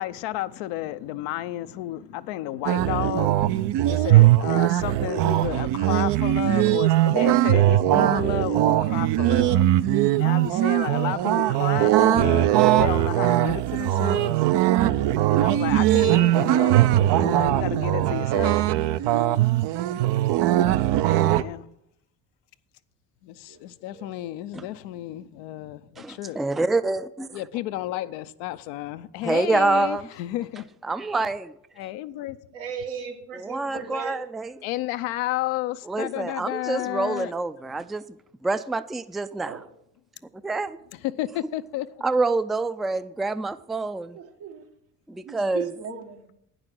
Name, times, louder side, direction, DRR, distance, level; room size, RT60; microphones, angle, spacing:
voice 1, 0.0-9.7 10.2-14.3 15.3-16.8 17.2-18.6 21.1-21.7 23.2-26.4 27.3-30.7 31.8-32.4 34.6-37.3 40.9-41.9, left 14 dB, 75° left, 0.7 m, -32 dB
sound 1, 2.7-21.4, right 14 dB, 60° right, 0.6 m, -20 dB
voice 2, 23.5-24.1 32.5-34.2 39.4-39.6 44.1-44.7 45.2-46.3, right 6 dB, 80° right, 1.7 m, -37 dB
voice 3, 26.0-27.4 29.2-30.1 30.8-31.5 33.4-34.5 35.9-38.0 38.4-39.5 40.4-40.8 42.0-44.2 45.1-45.7, right 3 dB, ahead, 0.4 m, -26 dB
9.5 x 6.4 x 7.6 m
hypercardioid pair, 55°, 47 cm